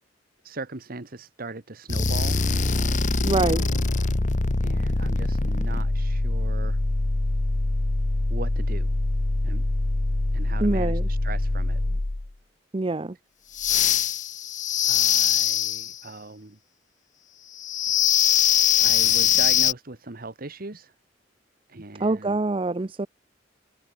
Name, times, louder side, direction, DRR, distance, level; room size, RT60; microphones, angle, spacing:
voice 1, 0.4-2.4 3.4-3.7 4.6-6.8 8.3-9.0 9.4-9.7 10.3-11.8 14.9-16.6 18.4-20.9 21.7-22.4, right 3 dB, 50° right, 1.5 m, -39 dB
sound 1, 1.9-12.3 13.5-16.0 17.6-19.7, left 5 dB, 40° left, 0.9 m, -23 dB
voice 2, 3.2-3.6 10.6-11.0 12.7-13.1 22.0-23.1, right 2 dB, 30° right, 0.6 m, -25 dB
head